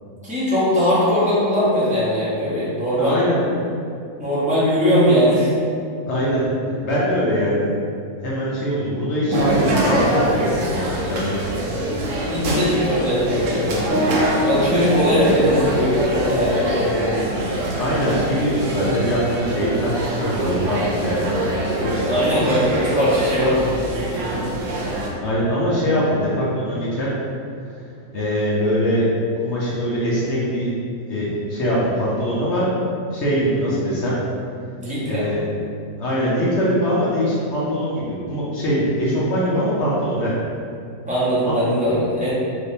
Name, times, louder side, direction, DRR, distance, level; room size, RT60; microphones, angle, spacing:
voice 1, 0.2-3.2 4.2-5.5 12.2-17.2 22.0-24.4 34.8-35.3 41.1-42.3, equal, 10° right, -11 dB, 0.4 m, -20 dB
voice 2, 3.0-3.4 6.1-6.4 6.7-8.0 8.2-11.7 17.8-22.2 25.2-27.1 28.1-29.1 29.4-30.7 31.1-32.7 33.1-34.2 35.1-35.4 36.0-40.3 41.5-41.6, equal, 65° left, -7 dB, 0.7 m, -22 dB
sound 1, 9.3-25.1, right 1 dB, 75° right, 0.7 m, -24 dB
3.4 x 2.9 x 2.7 m, 2.4 s
omnidirectional pair, 1.8 m